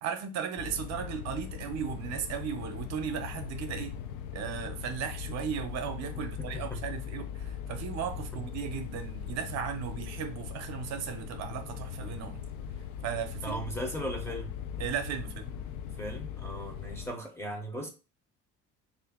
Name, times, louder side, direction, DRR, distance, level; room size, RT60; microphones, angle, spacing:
voice 1, 0.0-4.0 4.3-12.4 13.0-13.6 14.3-14.4 14.8-15.5, right 8 dB, 55° right, 0.6 m, -36 dB
sound 1, 0.6-17.1, left 8 dB, 70° left, 0.5 m, -40 dB
voice 2, 6.2-6.8 13.4-14.5 16.0-17.9, equal, 10° left, 0.7 m, -37 dB
3.3 x 2.5 x 3.5 m
cardioid pair, 135°, 31 cm